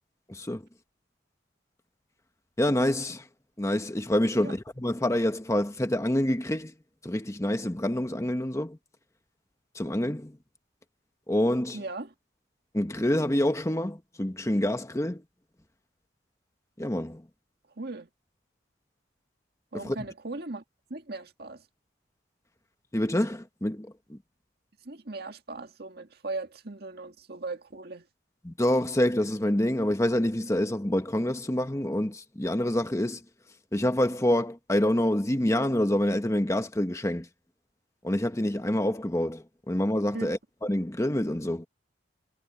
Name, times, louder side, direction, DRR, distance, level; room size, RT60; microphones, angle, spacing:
voice 1, 0.3-0.6 2.6-3.2 3.6-6.7 7.0-8.8 9.7-10.3 11.3-11.8 12.7-15.2 16.8-17.2 19.7-20.0 22.9-24.2 28.4-33.2 33.7-37.3 38.0-41.7, left 1 dB, 15° left, 1.0 m, -27 dB
voice 2, 11.7-12.1 17.8-18.1 19.7-20.6 20.9-21.6 24.8-28.1 40.1-40.3, right 3 dB, 55° right, 2.0 m, -38 dB
head